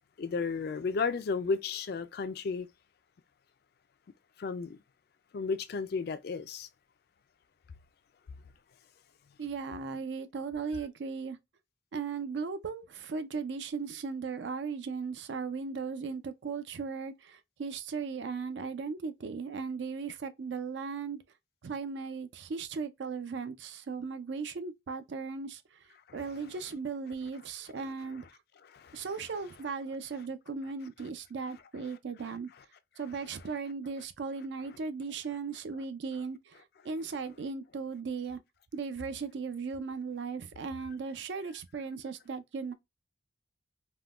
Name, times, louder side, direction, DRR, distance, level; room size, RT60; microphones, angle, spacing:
voice 1, 0.2-2.7 4.4-4.8 5.3-6.7 26.1-26.2 28.7-29.1, left 4 dB, 55° left, 0.3 m, -33 dB
voice 2, 9.4-11.4 11.9-21.2 21.6-25.8 26.1-28.2 28.9-32.5 33.0-38.4 38.7-42.7, right 5 dB, 65° right, 0.4 m, -37 dB
3.6 x 2.2 x 2.3 m
head